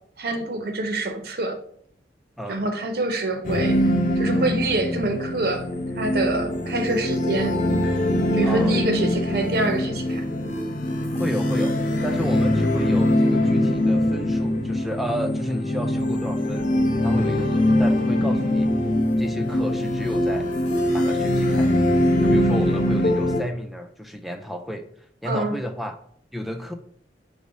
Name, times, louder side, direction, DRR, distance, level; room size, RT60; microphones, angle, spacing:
voice 1, 0.2-1.5 2.5-3.8 4.2-5.6 6.0-7.5 8.3-10.2 25.2-25.6, right 2 dB, 55° right, 6 dB, 0.6 m, -26 dB
sound 1, 3.4-23.4, left 1 dB, 45° left, 0.7 m, -22 dB
voice 2, 8.4-8.8 11.1-11.8 12.0-16.7 17.0-18.7 19.2-20.5 20.9-21.8 22.2-24.9 25.2-26.0 26.3-26.7, equal, ahead, 7 dB, 0.3 m, -32 dB
5.2 x 2.0 x 4.7 m, 0.63 s
head